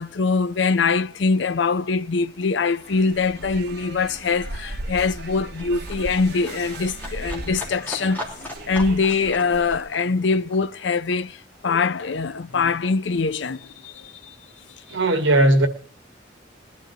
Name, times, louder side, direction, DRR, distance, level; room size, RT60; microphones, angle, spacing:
voice 1, 0.0-8.2 8.7-14.3, left 4 dB, 70° left, 0.6 m, -23 dB
Livestock farm animals working animals, 1.8-12.5 12.8-13.9 14.2-14.3, left 1 dB, 10° left, 3.4 m, -40 dB
sound 1, 2.7-9.9, right 2 dB, 55° right, 1.2 m, -36 dB
voice 2, 14.9-15.7, right 1 dB, 90° right, 1.8 m, -17 dB
21.5 x 11.5 x 2.9 m
head